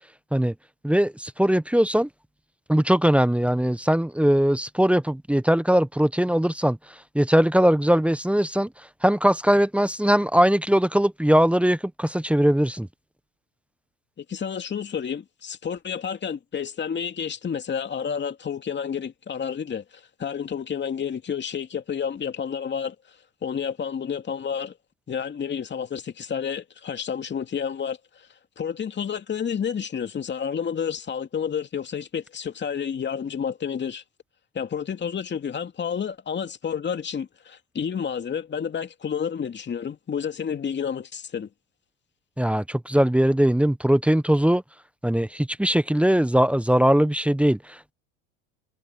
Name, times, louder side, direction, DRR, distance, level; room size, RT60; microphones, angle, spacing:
voice 1, 0.8-2.1 2.7-6.8 7.1-8.7 9.0-12.9 42.4-44.6 45.0-47.9, equal, 5° right, 1.2 m, -20 dB
voice 2, 14.2-23.0 23.4-24.7 25.1-28.3 28.6-34.0 34.5-41.5, left 7 dB, 30° left, 2.6 m, -30 dB
hypercardioid pair, 90°, 37 cm